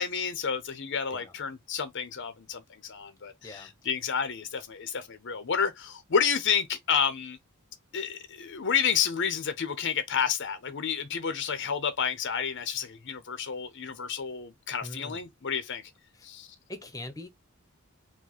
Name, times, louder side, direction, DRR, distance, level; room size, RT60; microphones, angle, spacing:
voice 1, 0.0-7.4 7.9-15.8 16.2-16.5, left 7 dB, 55° left, 0.6 m, -30 dB
voice 2, 14.8-15.2 16.1-16.3 16.7-17.3, left 1 dB, 15° left, 0.8 m, -42 dB
4.7 x 2.1 x 4.2 m
head